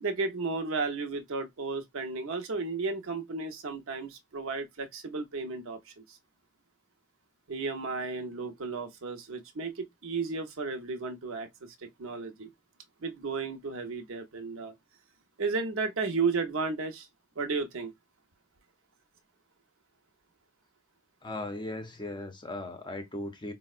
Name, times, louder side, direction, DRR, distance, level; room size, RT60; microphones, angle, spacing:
voice 1, 0.0-6.2 7.5-12.5 13.0-14.7 15.4-17.1 17.4-17.9, right 4 dB, 65° right, 0.7 m, -33 dB
voice 2, 21.2-23.5, left 2 dB, 20° left, 0.6 m, -37 dB
4.5 x 2.0 x 2.4 m
head